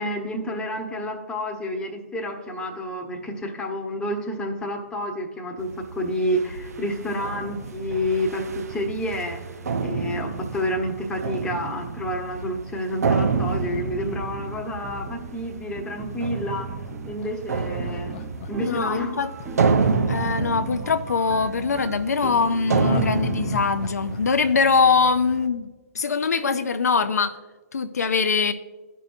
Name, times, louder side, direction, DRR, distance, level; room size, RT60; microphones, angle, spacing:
voice 1, 0.0-9.4 9.8-16.7 17.0-18.1 18.5-19.2, left 1 dB, 10° left, 0 dB, 1.1 m, -29 dB
sound 1, 5.6-25.5, right 4 dB, 75° right, 0.7 m, -29 dB
sound 2, 13.9-15.3 15.8-16.2 16.7-17.2 17.6-23.9, right 4 dB, 20° right, 0.8 m, -39 dB
Laughter, 16.8-21.1 22.6-25.7 26.0-26.1, left 10 dB, 40° left, 0.5 m, -37 dB
voice 2, 18.6-19.3 20.1-25.7 25.9-27.3 27.7-28.5, left 5 dB, 85° left, 9 dB, 0.5 m, -22 dB
14.5 x 5.4 x 2.6 m, 1.3 s
hypercardioid pair, 130°, 9 cm